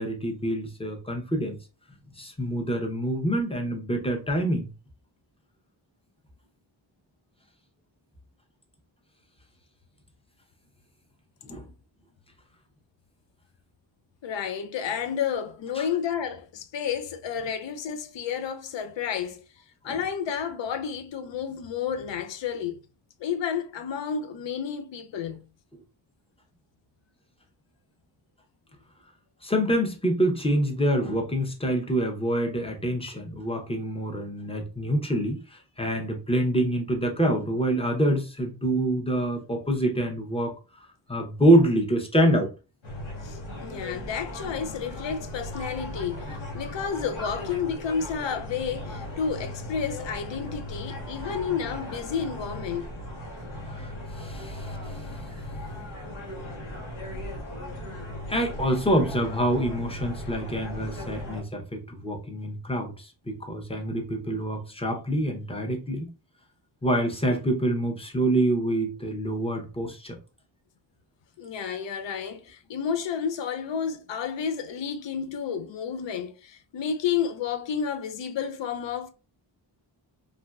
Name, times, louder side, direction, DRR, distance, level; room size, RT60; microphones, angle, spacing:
voice 1, 0.0-1.6 2.2-4.7 11.4-11.7 15.8-15.9 19.9-20.0 29.4-42.5 51.3-51.4 53.7-54.8 58.3-66.1 66.8-70.2, right 1 dB, 10° left, 0.6 m, -26 dB
voice 2, 14.2-19.4 19.8-22.8 23.2-25.5 43.2-52.9 54.5-54.6 71.4-79.1, left 7 dB, 70° left, 0.5 m, -31 dB
sound 1, 42.8-61.4, left 1 dB, 85° left, 1.2 m, -37 dB
3.0 x 2.5 x 2.2 m
wide cardioid pair, 95°, 47 cm